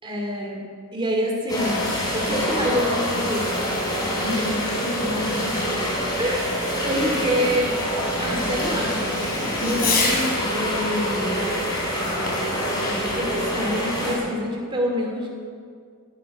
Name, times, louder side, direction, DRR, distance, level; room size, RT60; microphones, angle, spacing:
voice 1, 0.0-0.6 0.9-1.8 2.1-3.6 4.1-5.5 6.2-7.7 8.2-11.4 12.9-15.3, equal, 25° right, 0 dB, 2.7 m, -27 dB
sound 1, 1.5-14.2, equal, 20° left, 3.5 m, -26 dB
Fireworks, 2.8-10.5 12.3-13.3, left 3 dB, 45° left, 3.3 m, -32 dB
17.5 x 12.0 x 5.0 m, 2.1 s
head